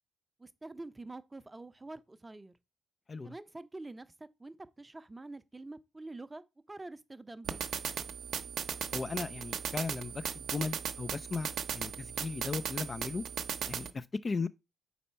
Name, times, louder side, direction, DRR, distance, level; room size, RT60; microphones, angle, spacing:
voice 1, 0.4-2.5 3.2-4.1 4.4-7.6, right 2 dB, 15° right, 0.6 m, -46 dB
sound 1, 7.4-13.9, right 7 dB, 65° right, 0.7 m, -37 dB
voice 2, 8.9-13.2 13.7-14.5, left 4 dB, 35° left, 0.3 m, -37 dB
4.3 x 4.0 x 5.6 m
cardioid pair, 90°, 0 cm